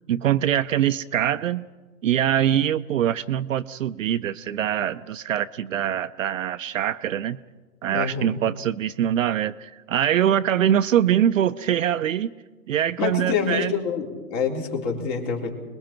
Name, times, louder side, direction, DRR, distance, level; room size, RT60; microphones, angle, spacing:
voice 1, 0.1-1.7 2.0-7.4 7.8-12.3 12.7-13.8, right 10 dB, 50° right, 12 dB, 0.6 m, -23 dB
voice 2, 7.9-8.4 13.0-15.5, left 6 dB, 45° left, 1 dB, 3.9 m, -26 dB
29.5 x 21.0 x 4.4 m, 1.3 s
hypercardioid pair, 130°, 50 cm